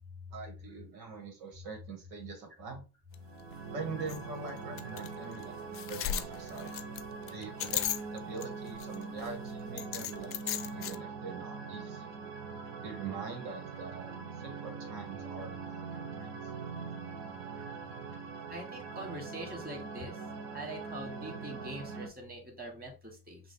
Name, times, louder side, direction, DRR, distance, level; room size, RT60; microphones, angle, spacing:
voice 1, 0.3-2.8 3.7-6.8 7.3-7.8 8.1-12.1 12.8-16.5, right 4 dB, 85° right, 2 dB, 1.8 m, -44 dB
sound 1, 3.1-3.2 3.5-3.6 4.1-4.2 4.8-5.1 5.4-5.5 5.7-8.4 8.8-9.3 9.8-11.0, left 11 dB, 30° left, 0.4 m, -35 dB
sound 2, 3.1-22.1, right 5 dB, 50° right, 1.1 m, -42 dB
voice 2, 18.5-20.2 20.5-23.4, right 1 dB, 20° right, 1 dB, 2.1 m, -43 dB
5.3 x 2.7 x 3.5 m, 0.29 s
supercardioid pair, 90°, 47 cm